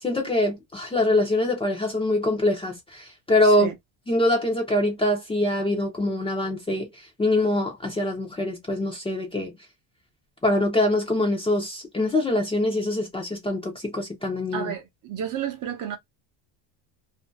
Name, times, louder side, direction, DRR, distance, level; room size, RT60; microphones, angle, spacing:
voice 1, 0.0-3.7 4.1-6.9 7.2-9.5 10.4-14.7, left 1 dB, 10° left, 0.6 m, -24 dB
voice 2, 14.5-16.0, right 9 dB, 40° right, 0.8 m, -31 dB
2.6 x 2.3 x 2.2 m
cardioid pair, 155°, 48 cm